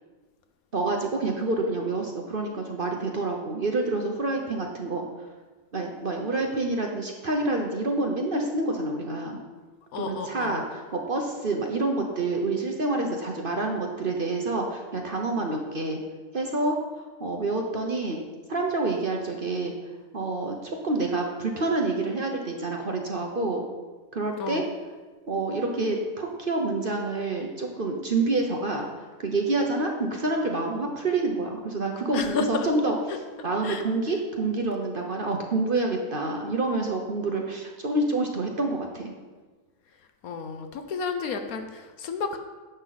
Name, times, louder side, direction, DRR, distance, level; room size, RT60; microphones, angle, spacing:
voice 1, 0.7-5.1 5.7-9.4 10.0-16.0 16.3-16.8 17.2-18.2 18.5-19.7 20.1-23.6 24.1-24.6 25.3-28.9 29.2-39.1, right 2 dB, 40° right, 1 dB, 1.0 m, -27 dB
voice 2, 9.9-10.6 24.4-24.7 32.1-32.7 33.6-33.8 40.2-42.4, left 5 dB, 65° left, 7 dB, 1.2 m, -31 dB
11.0 x 7.8 x 4.1 m, 1.3 s
omnidirectional pair, 1.7 m